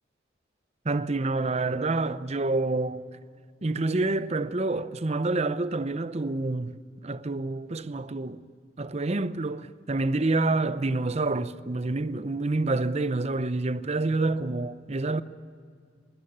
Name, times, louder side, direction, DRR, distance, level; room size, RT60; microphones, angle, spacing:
voice 1, 0.8-3.0 3.6-6.8 7.0-8.4 8.8-15.2, right 2 dB, 35° right, 0.7 m, -27 dB
21.0 x 18.0 x 9.9 m
head